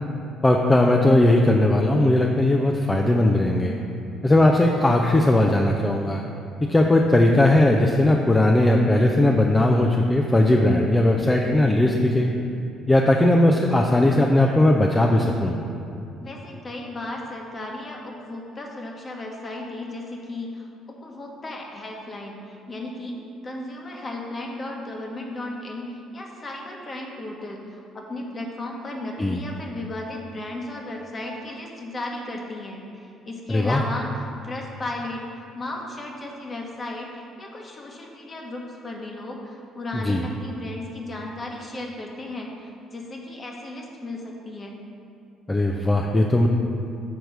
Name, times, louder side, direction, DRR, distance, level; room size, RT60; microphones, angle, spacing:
voice 1, 0.4-3.8 4.2-6.2 6.7-12.3 12.9-15.6 29.2-29.4 33.5-33.8 40.0-40.2 45.5-46.5, left 1 dB, 20° left, 1 dB, 0.5 m, -18 dB
voice 2, 16.2-23.1 23.4-44.7, left 2 dB, 35° left, 0 dB, 1.2 m, -35 dB
6.5 x 4.5 x 5.5 m, 2.7 s
hypercardioid pair, 55°, 0 cm